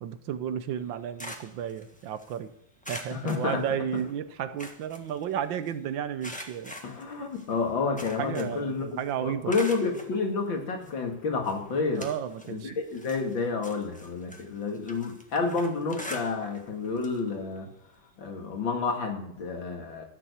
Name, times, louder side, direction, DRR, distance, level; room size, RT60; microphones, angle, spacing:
voice 1, 0.0-2.5 2.9-6.8 8.2-9.5 12.0-12.8, right 9 dB, 75° right, 12 dB, 1.5 m, -33 dB
sound 1, 0.8-2.4 2.8-4.1 4.4-5.7 6.2-8.7 9.0-10.1 10.8-10.9 11.4-12.6 12.9-16.7 17.0-17.2 17.6-17.7 18.9-19.0, equal, 5° left, 1.2 m, -43 dB
voice 2, 3.1-3.6 3.9-4.0 6.8-12.1 12.5-17.7 18.2-20.1, left 4 dB, 75° left, 3 dB, 2.8 m, -30 dB
13.5 x 7.1 x 8.1 m, 0.76 s
omnidirectional pair, 2.1 m